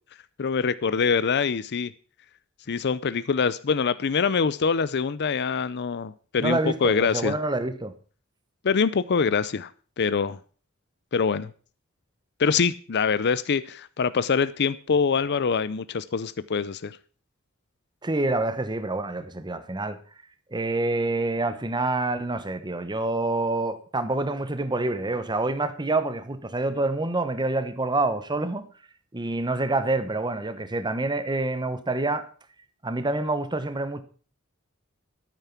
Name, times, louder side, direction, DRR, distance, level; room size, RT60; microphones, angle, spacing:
voice 1, 0.4-1.9 2.7-7.3 8.6-9.7 10.0-10.4 11.1-11.5 12.4-17.0, left 5 dB, 50° left, 0.5 m, -24 dB
voice 2, 6.4-7.9 18.0-20.0 20.5-28.6 29.1-32.3 32.8-34.0, right 2 dB, 20° right, 0.9 m, -27 dB
12.5 x 9.2 x 5.9 m
head